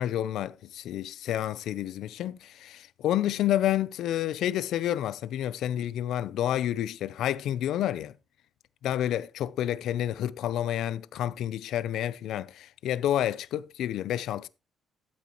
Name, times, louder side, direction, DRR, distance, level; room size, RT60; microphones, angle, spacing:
voice 1, 0.0-8.1 8.8-14.5, left 11 dB, 80° left, 0.5 m, -29 dB
12.0 x 8.4 x 3.0 m
cardioid pair, 90°, 0 cm